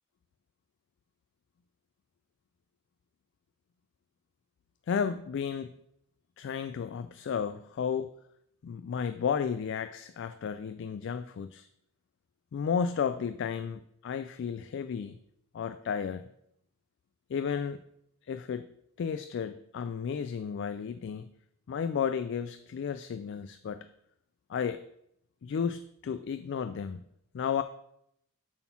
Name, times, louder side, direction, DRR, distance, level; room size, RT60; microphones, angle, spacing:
voice 1, 4.9-5.7 6.4-8.1 8.6-11.7 12.5-15.2 15.5-16.2 17.3-17.8 18.3-18.7 19.0-21.3 21.7-23.9 24.5-24.8 25.4-27.0 27.3-27.6, left 7 dB, 55° left, 11 dB, 0.3 m, -33 dB
7.5 x 4.1 x 5.8 m, 0.76 s
head